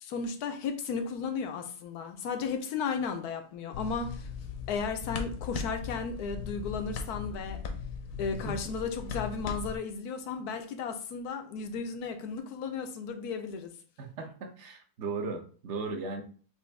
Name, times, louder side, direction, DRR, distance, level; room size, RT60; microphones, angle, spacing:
voice 1, 0.0-4.3 4.7-7.6 8.2-13.7, left 5 dB, 85° left, 1.2 m, -34 dB
sound 1, 3.7-9.8, left 5 dB, 65° left, 1.1 m, -38 dB
voice 2, 14.0-16.2, right 4 dB, 55° right, 1.0 m, -37 dB
6.2 x 2.5 x 3.3 m
omnidirectional pair, 1.6 m